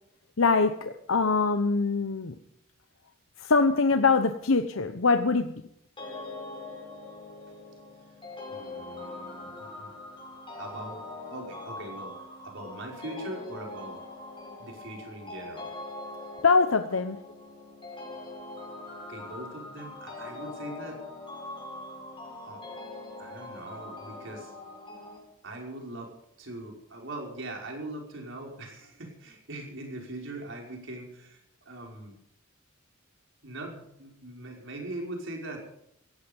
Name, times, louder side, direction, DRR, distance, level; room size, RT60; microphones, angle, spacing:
voice 1, 0.4-2.4 3.4-5.6 16.4-17.2, left 4 dB, 90° left, 8 dB, 0.9 m, -23 dB
sound 1, 6.0-25.2, left 2 dB, 25° left, 6.6 m, -42 dB
voice 2, 8.5-9.9 10.6-12.2 12.4-14.0 14.6-15.7 19.1-21.0 22.4-22.6 23.2-24.5 25.4-26.1 26.4-31.4 31.7-32.2 33.4-35.7, right 1 dB, 65° right, 1 dB, 5.5 m, -41 dB
17.5 x 15.0 x 5.4 m, 0.74 s
head